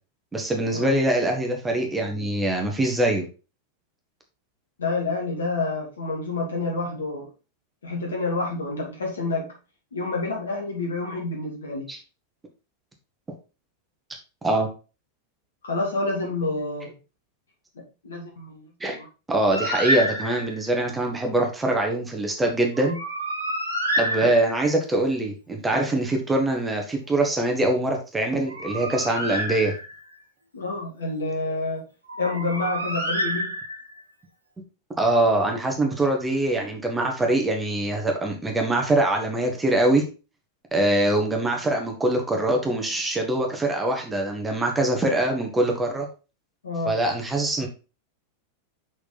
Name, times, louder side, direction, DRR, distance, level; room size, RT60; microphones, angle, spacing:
voice 1, 0.3-3.3 11.9-12.0 14.4-14.7 18.8-19.0 19.3-23.0 24.0-29.7 35.0-40.0 40.7-46.1 46.9-47.7, right 1 dB, 10° right, 2 dB, 1.8 m, -23 dB
voice 2, 4.8-7.3 7.8-9.5 9.9-11.8 15.6-16.9 17.8-18.7 18.9-19.1 30.5-31.8 32.2-33.5 46.6-46.9, left 3 dB, 70° left, -1 dB, 2.8 m, -28 dB
Bird, 19.5-20.7 22.7-24.8 28.3-30.1 32.1-34.0, equal, 80° right, 1.5 m, -28 dB
6.2 x 5.7 x 4.0 m, 0.32 s
figure-of-eight pair, 90°, 0 cm